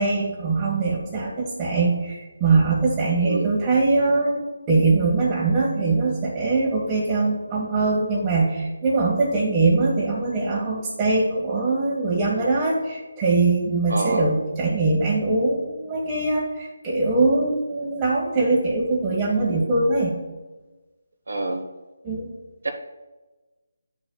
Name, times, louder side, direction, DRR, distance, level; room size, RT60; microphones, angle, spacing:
voice 1, 0.0-20.2 22.0-22.3, right 3 dB, 20° right, -6 dB, 1.4 m, -22 dB
voice 2, 13.9-14.2 21.3-21.6 22.6-22.7, right 2 dB, 75° right, 4 dB, 1.0 m, -26 dB
11.5 x 5.8 x 2.3 m, 1.2 s
figure-of-eight pair, 160°, 0 cm